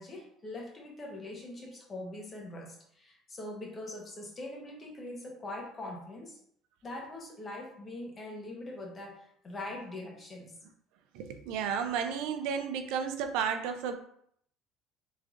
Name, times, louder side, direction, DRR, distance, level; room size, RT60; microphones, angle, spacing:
voice 1, 0.0-6.4 6.8-10.6, left 1 dB, 30° left, 0 dB, 1.1 m, -42 dB
voice 2, 11.1-13.9, right 7 dB, 75° right, 7 dB, 0.4 m, -32 dB
3.5 x 3.1 x 2.5 m, 0.67 s
supercardioid pair, 95°, 0 cm